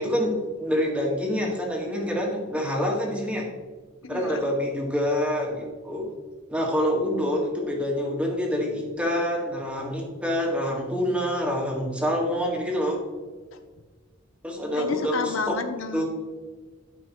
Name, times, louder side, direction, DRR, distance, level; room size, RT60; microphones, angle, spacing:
voice 1, 0.0-3.5 4.1-6.1 6.5-13.0 14.4-15.6 15.9-16.1, equal, 5° right, -1 dB, 1.6 m, -26 dB
voice 2, 4.0-4.4 13.5-13.6 14.8-16.1, left 4 dB, 90° left, 8 dB, 0.8 m, -31 dB
12.5 x 5.5 x 3.1 m, 1.4 s
head